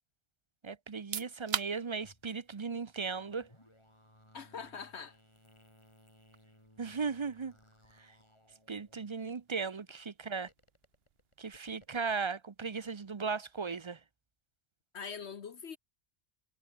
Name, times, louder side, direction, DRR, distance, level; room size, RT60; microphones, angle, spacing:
voice 1, 0.6-3.5 6.8-7.5 8.7-10.5 11.4-14.0, right 5 dB, 30° right, 0.6 m, -37 dB
sound 1, 0.9-13.5, right 8 dB, 60° right, 1.1 m, -48 dB
sound 2, 1.9-9.6 10.3-12.3, left 1 dB, 25° left, 7.0 m, -63 dB
voice 2, 4.3-5.2 14.9-15.8, left 6 dB, 70° left, 1.4 m, -43 dB
omnidirectional pair, 1.2 m